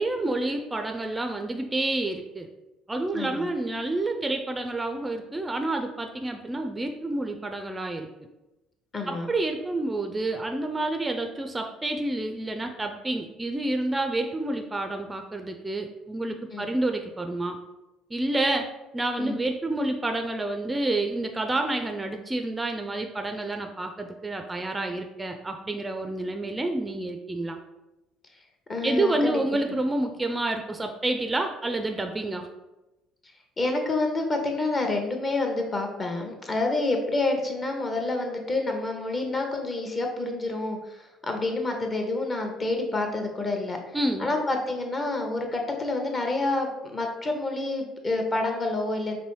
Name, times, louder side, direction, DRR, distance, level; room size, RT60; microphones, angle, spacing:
voice 1, 0.0-2.5 2.9-8.1 9.1-17.6 18.1-18.7 18.9-27.6 28.8-32.5 43.9-44.3, right 2 dB, 15° right, 4 dB, 0.4 m, -29 dB
voice 2, 3.1-3.5 8.9-9.3 16.5-16.7 19.2-19.4 28.7-29.4 33.6-43.8 44.2-49.2, left 2 dB, 30° left, 3 dB, 0.8 m, -28 dB
5.3 x 2.6 x 3.0 m, 1.0 s
figure-of-eight pair, 55°, 0 cm